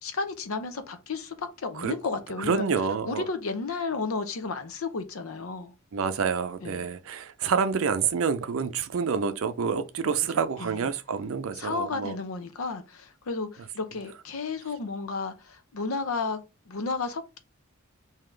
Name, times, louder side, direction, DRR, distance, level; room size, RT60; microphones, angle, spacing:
voice 1, 0.0-2.6 3.1-5.7 6.6-6.9 10.0-10.9 11.5-16.4 16.7-17.4, left 4 dB, 90° left, 0.7 m, -33 dB
voice 2, 2.5-3.2 5.9-12.2, right 6 dB, 70° right, 0.5 m, -28 dB
3.7 x 2.8 x 3.2 m
head